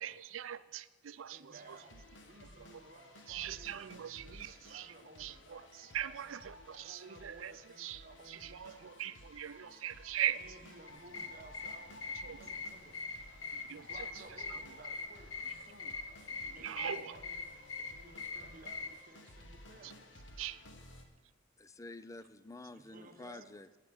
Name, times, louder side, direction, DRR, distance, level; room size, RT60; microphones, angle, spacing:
voice 1, 0.0-1.6 3.3-4.9 5.2-5.6 5.9-10.4 12.2-12.4 13.7-13.9 16.6-17.1 19.8-19.9 20.4-20.6, right 10 dB, 85° right, 0.5 m, -40 dB
voice 2, 1.3-2.0 2.3-6.2 6.7-9.4 10.3-12.0 12.3-13.0 13.5-16.0 16.3-17.4 17.8-20.0 22.7-23.5, right 2 dB, 45° right, 1.0 m, -57 dB
sound 1, 1.5-21.0, left 1 dB, 65° left, 1.5 m, -56 dB
sound 2, 10.9-19.0, left 4 dB, 85° left, 1.0 m, -44 dB
voice 3, 21.6-23.7, left 2 dB, 15° left, 0.5 m, -49 dB
17.0 x 5.8 x 8.0 m
head